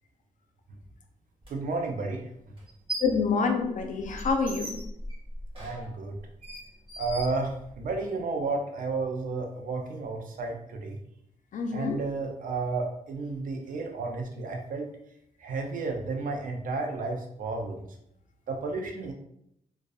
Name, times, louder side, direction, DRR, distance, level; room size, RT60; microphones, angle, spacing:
sound 1, 1.4-1.5 2.6-3.2 3.6-8.0, equal, 35° right, 1.3 m, -39 dB
voice 1, 1.5-2.2 5.5-6.2 7.0-11.0 11.7-14.9 15.4-17.9 18.5-19.1, right 3 dB, 70° right, 3 dB, 0.5 m, -32 dB
voice 2, 3.0-4.8 11.5-12.0, left 4 dB, 60° left, 4 dB, 0.4 m, -27 dB
2.5 x 2.2 x 2.3 m, 0.78 s
cardioid pair, 75°, 14 cm